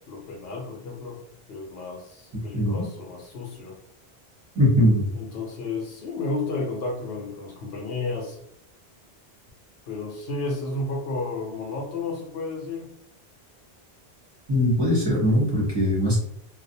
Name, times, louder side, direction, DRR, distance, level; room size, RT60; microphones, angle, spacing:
voice 1, 0.1-1.2 1.5-3.8 5.1-8.4 9.9-12.9, left 3 dB, 70° left, -1 dB, 0.9 m, -32 dB
voice 2, 2.5-2.9 4.5-5.1 14.5-16.2, equal, 25° right, -7 dB, 0.8 m, -21 dB
2.4 x 2.0 x 2.6 m, 0.68 s
omnidirectional pair, 1.1 m